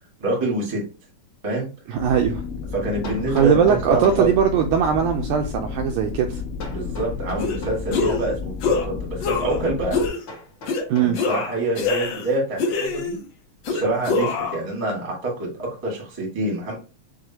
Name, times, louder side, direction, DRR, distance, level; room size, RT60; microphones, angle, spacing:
voice 1, 0.2-0.8 1.4-1.7 2.7-4.3 6.7-10.0 11.0-13.2 13.7-16.8, right 2 dB, 25° right, 0.6 m, -26 dB
voice 2, 1.9-2.4 3.3-6.4 10.9-11.2, right 8 dB, 80° right, 1.7 m, -20 dB
sound 1, 2.0-10.1, left 5 dB, 85° left, 2.3 m, -32 dB
Hammer, 3.0-4.3 6.6-7.9 10.3-11.5, left 1 dB, 50° left, 1.4 m, -38 dB
sound 2, 7.4-7.6 7.9-8.3 8.6-8.9 9.2-9.6 9.9-10.2 10.7-10.8 11.1-12.3 12.6-13.2 13.6-14.6, left 4 dB, 70° left, 1.5 m, -24 dB
6.2 x 2.1 x 2.8 m
omnidirectional pair, 3.8 m